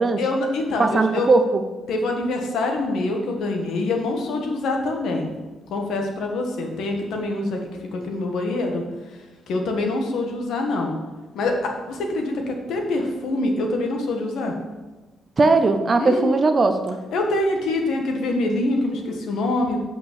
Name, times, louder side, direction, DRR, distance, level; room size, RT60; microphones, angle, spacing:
voice 1, 0.2-1.3 1.9-5.4 5.7-7.6 7.9-8.8 9.5-10.9 11.3-11.5 11.9-14.5 16.0-16.4 17.1-19.8, left 2 dB, 65° left, 2 dB, 1.7 m, -25 dB
voice 2, 0.8-1.6 15.4-17.0, right 3 dB, 25° right, 7 dB, 0.6 m, -19 dB
8.4 x 5.5 x 6.9 m, 1.2 s
cardioid pair, 170°, 0 cm